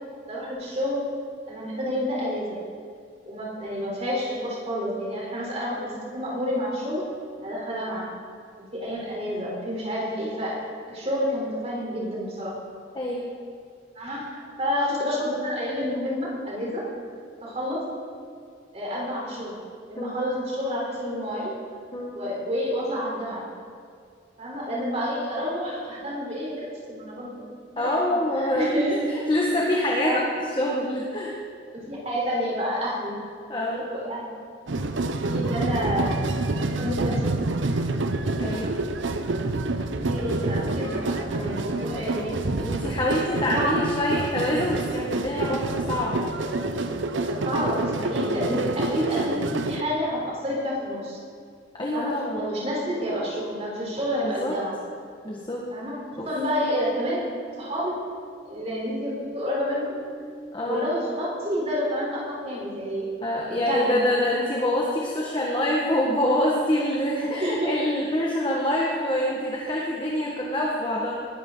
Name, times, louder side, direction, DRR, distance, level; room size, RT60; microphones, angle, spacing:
voice 1, 0.3-1.1 1.5-2.7 3.3-7.0 7.4-8.1 8.7-12.6 14.0-16.9 17.4-17.9 18.7-19.5 19.9-21.5 22.1-23.5 24.4-27.4 27.7-27.9 28.4-29.0 30.0-30.3 31.9-33.2 33.7-34.3 35.2-36.2 36.8-37.2 40.0-42.3 43.5-43.8 47.3-51.2 51.9-54.8 55.7-57.3 57.6-58.0 58.5-60.0 60.6-63.1 63.5-64.0 67.4-67.7, equal, 35° right, -4 dB, 3.9 m, -29 dB
voice 2, 12.9-13.3 20.0-20.2 21.9-22.2 27.8-28.7 29.1-30.2 30.6-31.4 33.5-33.8 38.4-38.7 42.6-46.3 51.7-52.5 54.1-54.6 55.2-55.7 56.2-56.3 60.5-60.8 63.2-71.1, left 1 dB, 25° left, -3 dB, 1.6 m, -25 dB
sound 1, 34.7-49.8, right 2 dB, 85° right, 0.8 m, -27 dB
20.0 x 12.5 x 3.9 m, 2.3 s
head